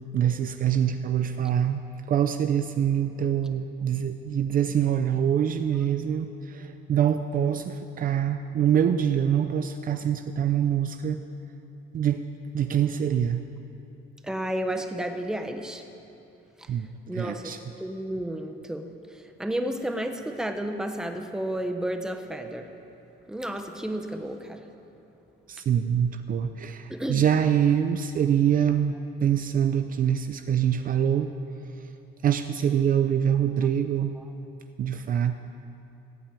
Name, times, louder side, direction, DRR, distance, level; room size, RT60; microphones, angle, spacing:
voice 1, 0.1-1.8 2.1-11.2 11.9-12.2 12.5-13.4 16.7-17.6 25.5-31.3 32.2-34.1 34.8-35.3, right 9 dB, 40° right, 8 dB, 0.6 m, -25 dB
voice 2, 14.3-15.8 17.1-17.5 17.8-18.9 19.4-22.7 23.3-24.6 26.9-27.2, right 1 dB, 5° right, 6 dB, 1.0 m, -31 dB
17.5 x 9.0 x 9.0 m, 2.8 s
cardioid pair, 160°, 21 cm